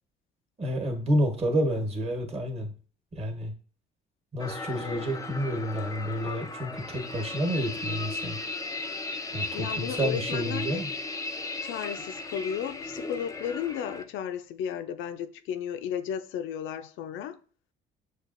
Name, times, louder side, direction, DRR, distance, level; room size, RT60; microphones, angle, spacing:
voice 1, 0.6-2.7 3.1-3.5 4.3-8.4 9.3-10.9, equal, 30° right, 1.2 m, -29 dB
sound 1, 4.4-14.0, left 3 dB, 15° left, 0.5 m, -36 dB
voice 2, 9.5-10.8 11.6-17.4, left 9 dB, 70° left, 0.5 m, -34 dB
6.4 x 2.4 x 2.6 m
supercardioid pair, 95°, 21 cm